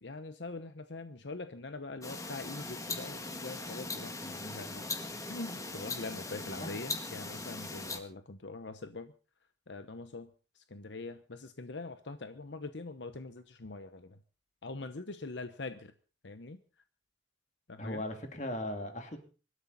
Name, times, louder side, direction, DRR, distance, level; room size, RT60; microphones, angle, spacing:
voice 1, 0.0-5.0 5.3-9.1 9.7-14.2 14.6-15.9 16.2-16.6 17.7-18.0, left 3 dB, 75° left, 10 dB, 1.0 m, -43 dB
sound 1, 2.0-8.0, left 3 dB, 15° left, 1.7 m, -40 dB
voice 2, 17.8-19.2, left 1 dB, 40° left, 6 dB, 2.6 m, -38 dB
24.0 x 12.5 x 4.1 m, 0.37 s
head